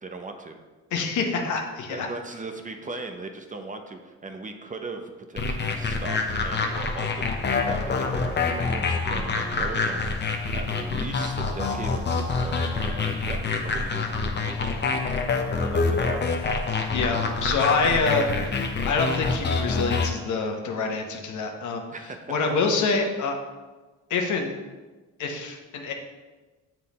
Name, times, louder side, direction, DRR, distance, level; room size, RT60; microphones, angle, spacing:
voice 1, 0.0-0.6 1.9-14.7 15.4-16.3 21.9-22.4, right 3 dB, 25° right, 5 dB, 0.7 m, -38 dB
voice 2, 0.9-2.1 16.9-18.3 18.9-21.8 22.3-23.4 24.1-24.5 25.2-25.9, left 4 dB, 75° left, 3 dB, 1.1 m, -26 dB
sound 1, 5.4-20.1, left 4 dB, 35° left, 0.8 m, -26 dB
7.3 x 4.4 x 4.2 m, 1.2 s
cardioid pair, 90°, 30 cm